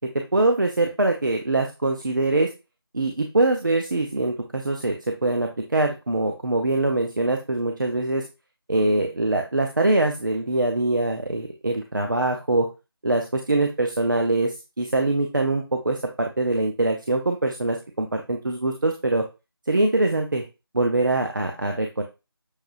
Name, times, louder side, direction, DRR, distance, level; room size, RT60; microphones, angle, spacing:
voice 1, 0.1-2.5 2.9-8.2 8.7-12.7 13.0-19.2 19.7-20.4 20.7-22.0, right 2 dB, 50° right, 3 dB, 0.6 m, -23 dB
6.5 x 3.1 x 2.6 m, 0.27 s
figure-of-eight pair, 170°, 13 cm